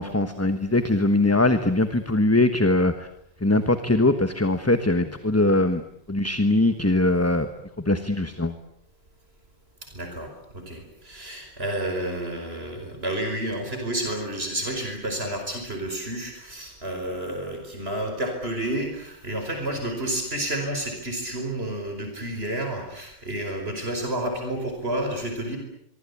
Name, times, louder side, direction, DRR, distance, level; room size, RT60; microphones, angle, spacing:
voice 1, 0.0-3.1 3.4-5.8 6.1-7.5 7.8-8.5, left 2 dB, 15° left, 10 dB, 1.2 m, -21 dB
voice 2, 9.8-25.6, right 1 dB, 70° right, 4 dB, 5.4 m, -30 dB
25.0 x 24.0 x 8.5 m, 0.73 s
omnidirectional pair, 1.1 m